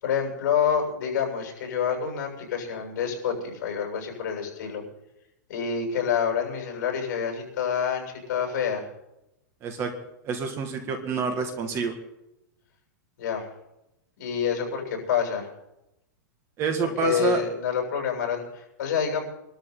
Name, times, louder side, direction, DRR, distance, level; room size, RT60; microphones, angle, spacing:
voice 1, 0.0-4.8 5.5-8.9 13.2-13.5 14.2-15.5 16.8-19.2, left 7 dB, 60° left, 0 dB, 7.4 m, -27 dB
voice 2, 9.6-9.9 10.3-11.9 16.6-17.4, right 5 dB, 25° right, 6 dB, 2.0 m, -27 dB
24.5 x 13.0 x 4.0 m, 0.90 s
supercardioid pair, 160°, 10 cm